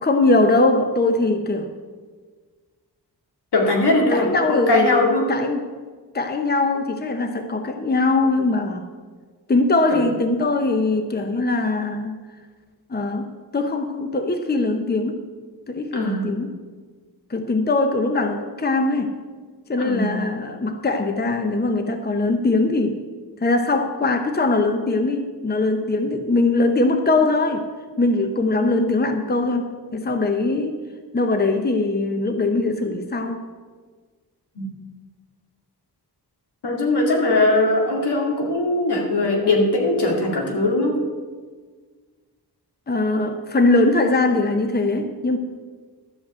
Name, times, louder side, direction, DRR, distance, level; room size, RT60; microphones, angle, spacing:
voice 1, 0.0-1.7 4.1-5.6 6.1-8.8 9.5-12.2 12.9-15.2 15.7-16.5 17.3-19.1 19.7-23.0 23.4-27.6 28.0-30.8 31.1-33.4 42.9-45.4, left 2 dB, 25° left, 7 dB, 0.8 m, -21 dB
voice 2, 3.5-5.3 9.9-10.0 15.9-16.3 19.8-20.3 28.4-28.8 34.6-34.7 36.6-41.0, left 2 dB, 75° left, 0 dB, 2.5 m, -20 dB
12.5 x 5.3 x 8.1 m, 1.5 s
wide cardioid pair, 85°, 40 cm